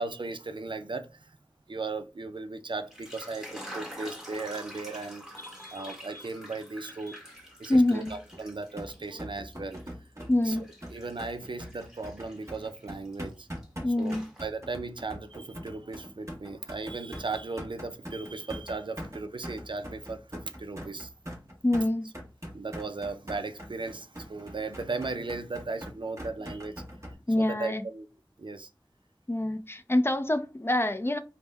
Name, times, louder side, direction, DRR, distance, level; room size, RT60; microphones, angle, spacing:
voice 1, 0.0-1.4 1.7-7.2 7.6-9.8 10.4-10.5 10.9-13.5 14.0-21.1 22.5-26.8 27.4-28.1 28.4-28.7, right 3 dB, 70° right, 0.4 m, -37 dB
sound 1, 2.7-9.2 9.5-13.7 14.0-14.8, equal, 5° right, 1.0 m, -47 dB
voice 2, 5.4-6.3 7.1-7.2 7.7-8.2 9.1-9.2 10.3-10.7 13.8-14.3 21.6-22.1 27.3-27.8 29.3-31.2, left 1 dB, 25° left, 0.4 m, -26 dB
sound 2, 7.7-27.1, equal, 35° right, 1.1 m, -42 dB
3.4 x 2.1 x 3.3 m
wide cardioid pair, 45°, 9 cm